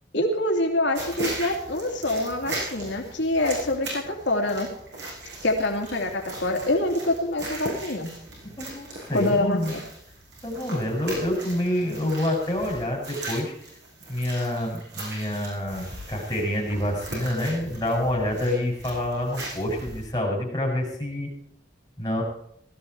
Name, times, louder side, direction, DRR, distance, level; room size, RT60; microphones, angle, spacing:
voice 1, 0.1-4.7 5.4-8.1 9.1-9.8, left 1 dB, 80° left, 1 dB, 2.5 m, -25 dB
sound 1, 0.9-20.1, right 1 dB, 70° right, 7.2 m, -38 dB
voice 2, 8.6-9.7 10.4-13.5 14.1-21.3 22.0-22.2, left 1 dB, 20° left, -2 dB, 7.6 m, -27 dB
18.0 x 13.5 x 4.7 m, 0.73 s
head